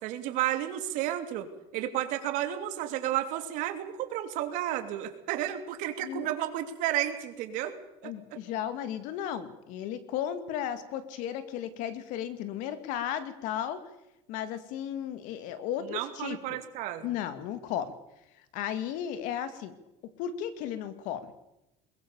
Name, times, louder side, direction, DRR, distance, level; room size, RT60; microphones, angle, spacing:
voice 1, 0.0-7.7 8.0-8.1 15.8-17.1, right 12 dB, 60° right, 7 dB, 2.9 m, -32 dB
voice 2, 8.0-13.8 14.3-16.6 17.0-17.9 18.5-19.7 20.2-21.3, left 10 dB, 65° left, 12 dB, 2.3 m, -34 dB
22.0 x 22.0 x 7.1 m, 0.91 s
cardioid pair, 160°, 15 cm